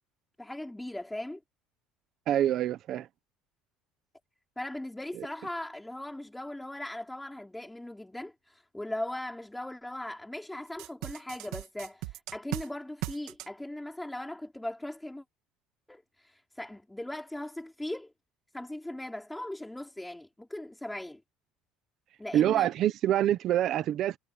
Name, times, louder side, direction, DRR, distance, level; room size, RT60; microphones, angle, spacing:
voice 1, 0.4-1.4 4.5-15.2 15.9-18.1 18.5-21.2 22.2-22.7, left 1 dB, 5° left, 3.5 m, -39 dB
voice 2, 2.3-3.1 5.1-5.3 22.3-24.2, right 12 dB, 45° right, 1.1 m, -26 dB
sound 1, 10.8-12.7 13.0-13.5, right 17 dB, 70° right, 2.4 m, -37 dB
cardioid pair, 160°, 0 cm